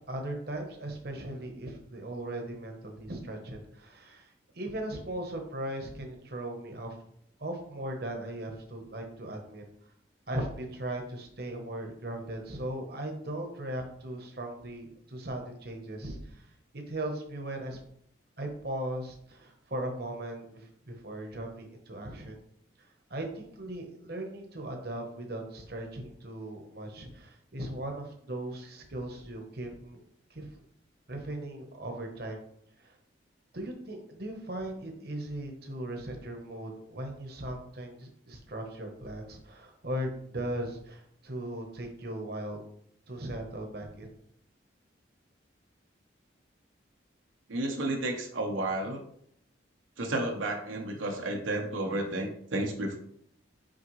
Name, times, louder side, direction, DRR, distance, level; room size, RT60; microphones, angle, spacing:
voice 1, 0.1-7.0 7.4-9.6 10.3-16.4 16.7-17.8 18.4-22.4 23.1-30.0 30.3-30.5 31.1-32.4 32.8-32.9 33.5-42.6 43.1-44.1, right 1 dB, 50° right, 3 dB, 1.0 m, -38 dB
voice 2, 47.5-49.0 50.0-53.0, right 1 dB, 85° right, 2 dB, 0.9 m, -32 dB
6.3 x 4.9 x 3.2 m, 0.69 s
head